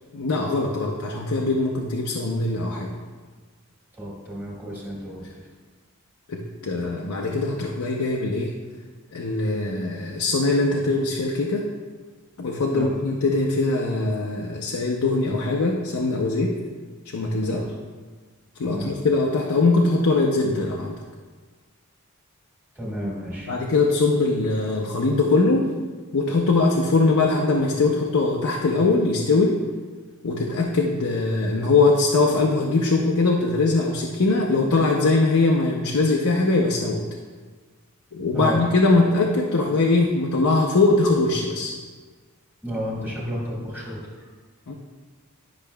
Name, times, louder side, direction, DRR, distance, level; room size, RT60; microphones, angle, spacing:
voice 1, 0.1-2.9 6.3-8.5 9.1-11.7 12.4-16.5 17.1-17.6 18.6-20.9 23.5-25.7 26.1-29.6 30.2-37.0 38.1-41.7 44.7-44.8, left 3 dB, 70° left, 0 dB, 0.6 m, -21 dB
voice 2, 3.9-5.3 12.7-12.9 17.5-17.7 18.6-18.9 22.7-23.5 38.3-38.6 42.6-44.3, equal, 10° right, -6 dB, 1.7 m, -31 dB
10.5 x 5.8 x 2.2 m, 1.4 s
head